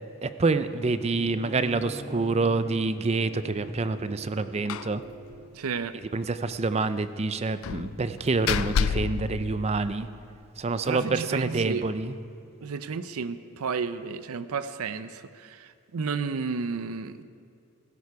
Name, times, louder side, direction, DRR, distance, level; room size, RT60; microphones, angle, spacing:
voice 1, 0.2-5.0 6.1-10.1 10.6-12.1, right 3 dB, 30° right, 12 dB, 0.5 m, -27 dB
Bowed string instrument, 0.9-5.5, right 1 dB, 30° left, 1.6 m, -44 dB
Slam, 4.7-5.0 5.3-5.4 5.7-5.8 7.6-10.2, left 7 dB, 70° left, 0.3 m, -30 dB
voice 2, 5.5-6.0 10.9-11.8 12.6-17.2, right 5 dB, 85° right, 13 dB, 0.5 m, -32 dB
16.0 x 13.5 x 4.7 m, 2.5 s
head